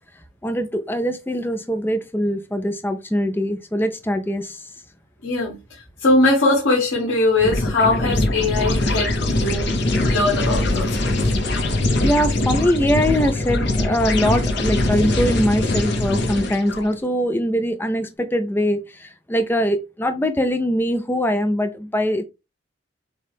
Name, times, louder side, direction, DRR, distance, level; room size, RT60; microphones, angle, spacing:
voice 1, 0.4-4.6 12.0-22.2, equal, 10° left, 0.4 m, -22 dB
voice 2, 5.2-5.6 6.0-10.9, left 2 dB, 80° left, 1.9 m, -20 dB
sound 1, 7.4-16.8, left 2 dB, 55° left, 0.9 m, -22 dB
6.5 x 2.3 x 3.4 m
head